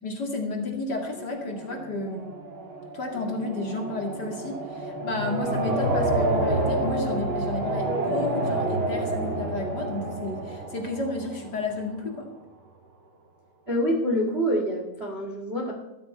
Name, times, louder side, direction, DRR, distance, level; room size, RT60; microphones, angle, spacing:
voice 1, 0.0-2.3 2.9-12.3, left 2 dB, 35° left, 1 dB, 1.7 m, -32 dB
sound 1, 1.1-11.9, right 1 dB, 40° right, 2.2 m, -29 dB
voice 2, 13.7-15.7, equal, 55° right, 0 dB, 0.6 m, -26 dB
14.5 x 13.5 x 4.4 m, 1.1 s
omnidirectional pair, 4.8 m